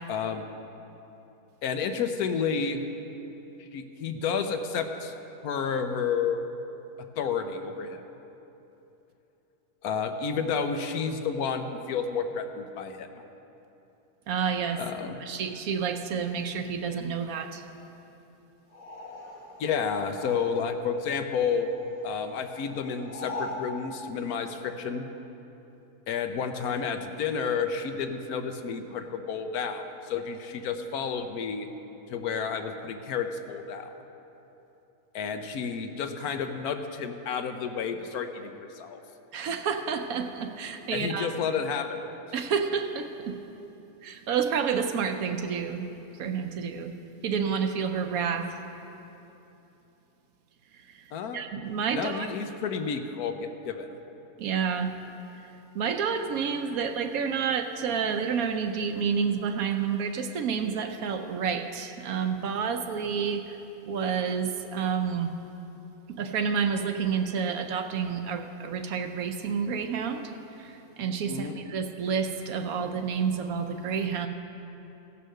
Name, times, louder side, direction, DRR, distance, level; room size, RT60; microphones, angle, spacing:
voice 1, 0.1-0.5 1.6-2.8 3.6-5.1 5.4-6.4 7.2-8.0 9.8-13.1 14.8-15.2 19.6-21.7 22.0-25.1 26.1-31.7 32.1-33.9 35.1-39.0 40.9-42.0 51.1-51.4 51.9-54.0 71.3-71.6, left 6 dB, 75° left, 7 dB, 1.2 m, -31 dB
voice 2, 14.3-14.8 15.2-17.6 39.3-41.3 42.3-43.4 44.0-45.8 46.2-46.9 47.2-48.5 51.3-52.3 54.4-54.9 55.7-63.4 63.9-65.3 66.2-70.2 70.6-70.7 71.0-74.3, right 6 dB, 70° right, 6 dB, 1.1 m, -29 dB
sound 1, 18.7-21.0 21.2-23.7, left 2 dB, 55° left, 1.3 m, -41 dB
16.0 x 5.6 x 6.5 m, 3.0 s
omnidirectional pair, 1.6 m